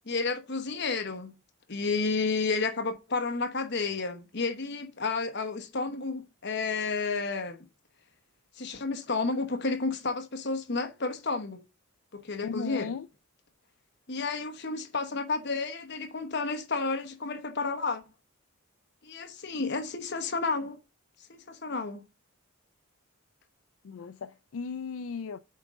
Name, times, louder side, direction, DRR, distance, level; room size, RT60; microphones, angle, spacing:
voice 1, 0.1-1.3 1.7-7.7 8.6-11.6 12.1-12.9 14.1-18.0 19.0-20.8 21.3-22.0, left 4 dB, 50° left, 1.0 m, -31 dB
voice 2, 12.4-13.1 23.8-25.4, left 5 dB, 65° left, 0.4 m, -36 dB
8.3 x 3.6 x 5.0 m
head